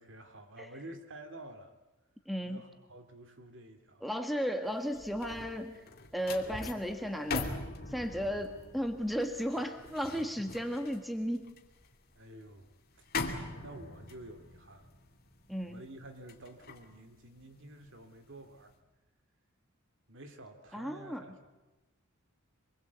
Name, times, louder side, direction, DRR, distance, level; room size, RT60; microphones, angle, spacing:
voice 1, 0.0-1.7 2.4-4.0 12.2-12.7 13.0-13.1 13.6-14.9 15.7-18.7 20.1-21.3, right 1 dB, 60° right, 7 dB, 2.4 m, -50 dB
voice 2, 2.2-2.6 4.0-5.8 6.1-7.5 7.9-11.4 15.5-15.8 20.7-21.2, equal, ahead, 6 dB, 1.7 m, -34 dB
sound 1, 4.7-18.0 18.4-18.7, left 3 dB, 45° left, 2.6 m, -42 dB
26.5 x 21.0 x 8.2 m, 1.1 s
head